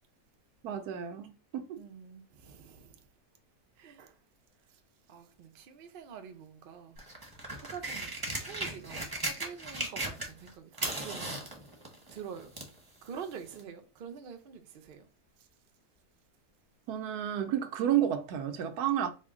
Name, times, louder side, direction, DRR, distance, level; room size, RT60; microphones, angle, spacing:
voice 1, 0.6-1.8 16.9-19.1, right 10 dB, 85° right, 1.2 m, -31 dB
voice 2, 1.8-3.1 3.8-4.2 4.7-4.8 5.1-7.0 7.6-11.5 12.1-12.5 13.0-15.1 15.4-15.5, right 7 dB, 65° right, 0.5 m, -46 dB
sound 1, 7.0-10.5 10.7-12.8 13.6-13.7, right 2 dB, 20° right, 0.7 m, -36 dB
4.3 x 2.2 x 3.5 m
omnidirectional pair, 1.6 m